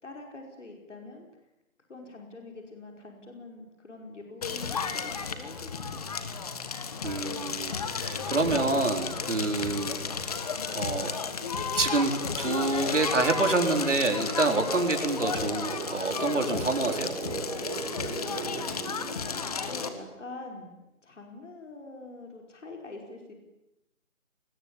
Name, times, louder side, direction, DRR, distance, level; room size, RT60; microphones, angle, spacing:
voice 1, 0.0-1.3 1.9-6.0 6.3-6.5 18.2-20.7 21.0-23.3, left 2 dB, 60° left, 2 dB, 5.5 m, -45 dB
Crackle, 4.4-19.9, left 5 dB, 30° left, 1.7 m, -33 dB
voice 2, 7.0-10.0 10.2-10.3 10.7-11.2 11.8-17.1, right 3 dB, 60° right, 4 dB, 4.5 m, -27 dB
sound 1, 9.9-20.3, right 5 dB, 30° right, 7.7 m, -41 dB
27.5 x 21.0 x 8.6 m, 0.93 s
figure-of-eight pair, 155°, 41 cm